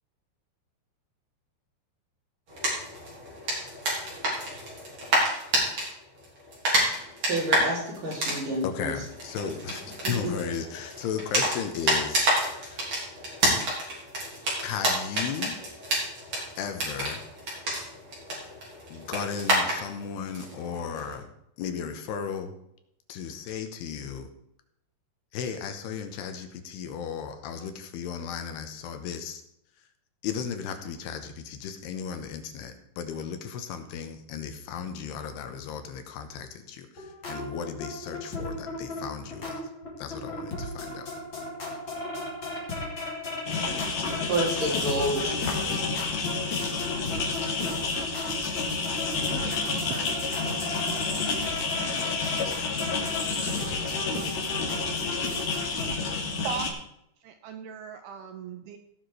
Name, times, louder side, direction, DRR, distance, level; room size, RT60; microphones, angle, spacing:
sound 1, 2.5-5.9 6.2-21.1, right 1 dB, 30° right, 4.0 m, -29 dB
voice 1, 7.3-8.9 10.0-10.3 44.2-45.4, right 1 dB, 50° right, 4.6 m, -29 dB
voice 2, 8.6-12.9 14.6-15.6 16.6-17.2 18.9-21.3 21.6-22.5 23.1-24.3 25.3-29.4 30.2-39.6 40.0-41.1, left 7 dB, 75° left, 3.0 m, -35 dB
sound 2, 37.0-55.9, left 2 dB, 30° left, 2.8 m, -36 dB
sound 3, 43.5-56.7, left 4 dB, 55° left, 2.2 m, -30 dB
voice 3, 45.1-45.8 49.3-50.2 56.4-56.7 57.2-58.8, right 7 dB, 80° right, 2.4 m, -38 dB
17.0 x 6.0 x 4.8 m
omnidirectional pair, 4.9 m